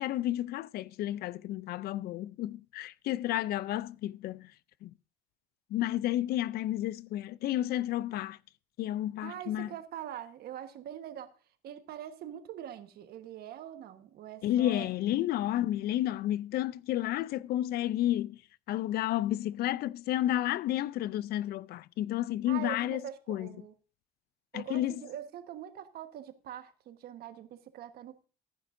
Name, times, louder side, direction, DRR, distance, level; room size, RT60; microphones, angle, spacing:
voice 1, 0.0-4.5 4.8-4.9 5.7-8.4 8.8-9.7 14.4-18.4 18.7-23.0 23.3-23.5 24.5-25.0, left 13 dB, 65° left, 0.4 m, -31 dB
voice 2, 9.2-11.3 11.6-14.9 22.5-23.7 24.5-28.3, right 10 dB, 70° right, 1.3 m, -43 dB
14.0 x 10.0 x 2.6 m
cardioid pair, 110°, 17 cm